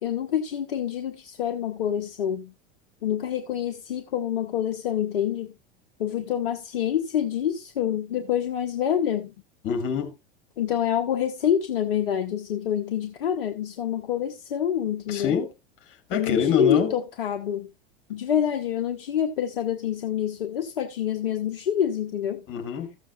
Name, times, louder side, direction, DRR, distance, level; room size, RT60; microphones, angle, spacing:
voice 1, 0.0-2.5 3.0-5.5 6.0-9.3 10.6-15.4 16.1-17.7 18.1-22.4, left 9 dB, 65° left, 1.0 m, -27 dB
voice 2, 9.6-10.1 15.1-15.5 16.1-16.9 22.5-23.0, left 7 dB, 40° left, 2.3 m, -25 dB
14.5 x 7.4 x 2.4 m
figure-of-eight pair, 85°, 29 cm